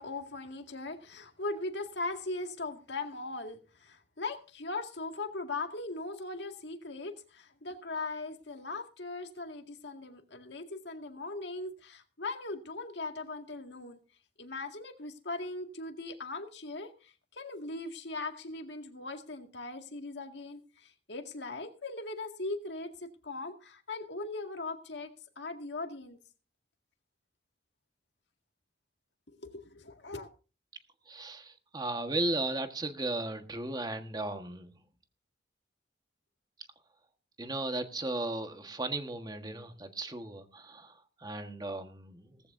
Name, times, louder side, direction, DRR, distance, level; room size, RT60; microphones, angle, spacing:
voice 1, 0.0-14.0 14.4-26.2 29.3-30.3, left 3 dB, 65° left, 5 dB, 2.0 m, -39 dB
voice 2, 31.1-34.7 37.4-42.4, right 2 dB, 20° right, 7 dB, 1.4 m, -36 dB
18.0 x 15.0 x 2.6 m, 0.34 s
head